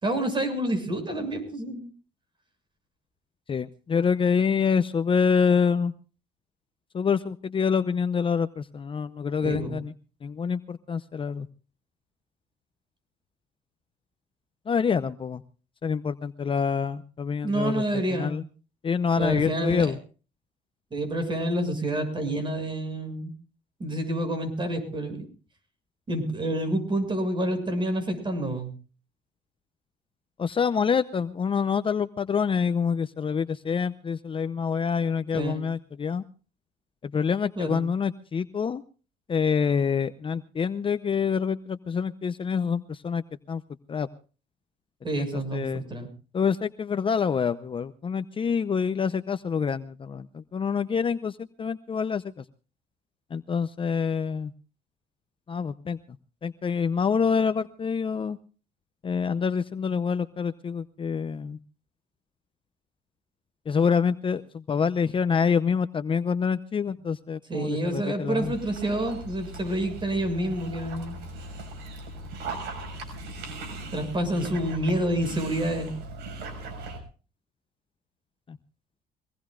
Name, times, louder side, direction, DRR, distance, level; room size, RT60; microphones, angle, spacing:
voice 1, 0.0-1.9 9.4-9.8 17.4-18.3 19.2-19.9 20.9-23.3 23.8-25.3 26.1-28.7 35.3-35.6 37.6-37.8 45.0-46.1 67.5-71.2 73.9-75.9, right 1 dB, 30° right, 8 dB, 6.8 m, -28 dB
voice 2, 3.5-5.9 6.9-9.9 10.2-11.5 14.7-15.4 15.8-18.4 18.8-20.0 30.4-36.2 37.0-38.8 39.3-43.6 43.9-44.1 45.1-45.8 46.3-52.4 53.3-54.5 55.5-56.0 56.4-58.4 59.0-61.6 63.7-68.5 78.5-78.6, left 6 dB, 30° left, 12 dB, 0.7 m, -26 dB
Dog, 68.4-77.0, right 2 dB, 80° right, 6.1 m, -39 dB
24.0 x 19.0 x 2.5 m, 0.37 s
cardioid pair, 110°, 17 cm